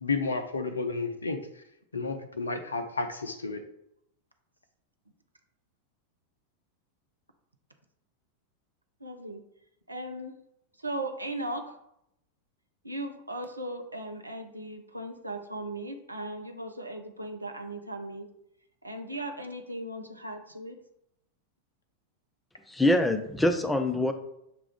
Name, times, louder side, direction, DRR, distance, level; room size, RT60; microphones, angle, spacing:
voice 1, 0.0-1.4 1.9-3.6, left 4 dB, 75° left, 7 dB, 0.4 m, -31 dB
voice 2, 9.0-9.4 9.9-10.4 10.8-11.7 12.8-18.3 18.8-20.8, right 1 dB, 85° right, 5 dB, 0.5 m, -37 dB
voice 3, 22.7-24.1, left 1 dB, 5° left, 7 dB, 0.5 m, -24 dB
6.6 x 2.4 x 3.4 m, 0.79 s
figure-of-eight pair, 90°, 0 cm